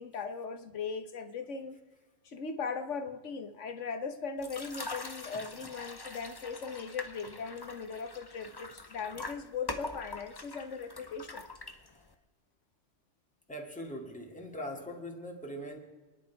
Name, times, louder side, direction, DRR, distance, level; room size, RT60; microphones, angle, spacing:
voice 1, 0.0-1.8 2.2-11.5, left 5 dB, 70° left, 9 dB, 1.5 m, -39 dB
sound 1, 4.4-12.1, left 2 dB, 20° left, 0.8 m, -44 dB
voice 2, 13.5-15.8, equal, 5° left, 1 dB, 2.1 m, -41 dB
29.5 x 10.5 x 4.7 m, 1.2 s
omnidirectional pair, 1.3 m